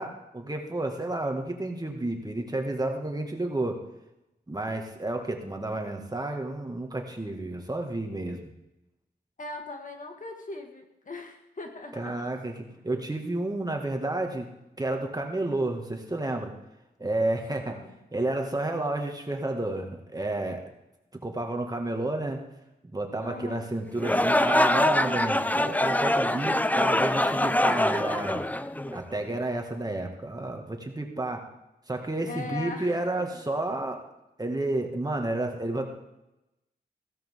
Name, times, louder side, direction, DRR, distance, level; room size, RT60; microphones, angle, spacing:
voice 1, 0.0-3.8 4.5-8.5 12.0-12.5 12.8-14.5 14.8-16.5 17.0-17.8 18.1-20.6 21.2-22.4 22.9-28.4 28.9-31.4 31.9-34.0 34.4-35.9, right 2 dB, 25° right, 3 dB, 2.1 m, -31 dB
voice 2, 9.4-12.3 17.6-18.0 23.2-23.7 32.3-33.4, left 3 dB, 50° left, 3 dB, 2.0 m, -40 dB
sound 1, 24.0-29.2, left 1 dB, 10° left, 0.5 m, -24 dB
16.0 x 12.5 x 3.8 m, 0.91 s
wide cardioid pair, 75°, 17 cm